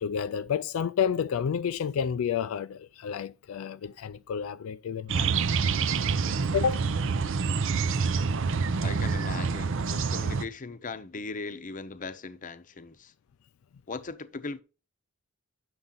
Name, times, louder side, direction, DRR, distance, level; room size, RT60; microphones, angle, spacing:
voice 1, 0.0-5.4 6.5-6.8, left 7 dB, 80° left, 0.4 m, -30 dB
sound 1, 5.1-10.5, right 5 dB, 65° right, 0.6 m, -27 dB
voice 2, 8.8-13.1 13.9-14.6, left 3 dB, 40° left, 0.7 m, -39 dB
8.8 x 6.7 x 3.9 m
head